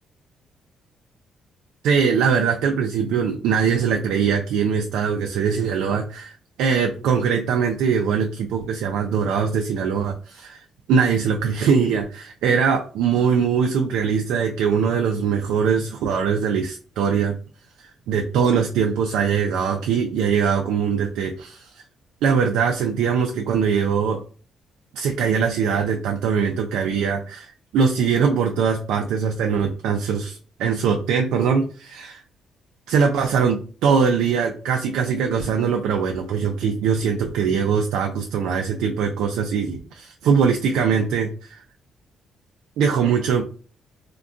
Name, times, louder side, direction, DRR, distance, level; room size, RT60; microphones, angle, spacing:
voice 1, 1.8-10.6 10.9-17.3 17.8-21.7 22.2-24.2 24.9-32.2 32.9-41.6 42.8-43.4, right 6 dB, 90° right, 3 dB, 0.3 m, -22 dB
3.5 x 2.2 x 2.5 m, 0.40 s
cardioid pair, 90°, 0 cm